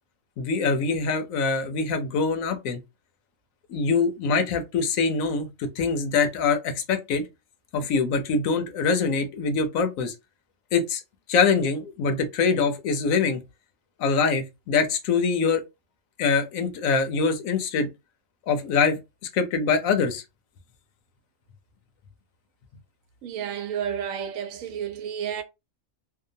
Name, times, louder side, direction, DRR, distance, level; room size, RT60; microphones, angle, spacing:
voice 1, 0.4-2.8 3.7-7.2 7.7-10.1 10.7-11.0 11.3-13.4 14.0-15.6 16.2-17.9 18.5-19.0 19.3-20.2, left 5 dB, 80° left, 1.0 m, -24 dB
voice 2, 23.2-25.4, right 8 dB, 75° right, 1.0 m, -31 dB
2.8 x 2.1 x 2.6 m
omnidirectional pair, 1.4 m